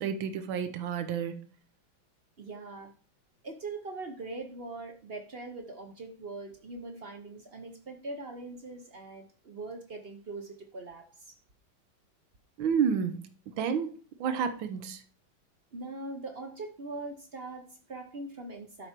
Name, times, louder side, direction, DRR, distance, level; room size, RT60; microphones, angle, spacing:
voice 1, 0.0-1.4 12.6-13.2 13.6-13.9 14.2-15.0, right 7 dB, 75° right, 1.6 m, -30 dB
voice 2, 2.4-2.9 3.4-11.4 15.7-18.9, right 2 dB, 45° right, 0.8 m, -41 dB
11.5 x 4.6 x 4.4 m
omnidirectional pair, 2.2 m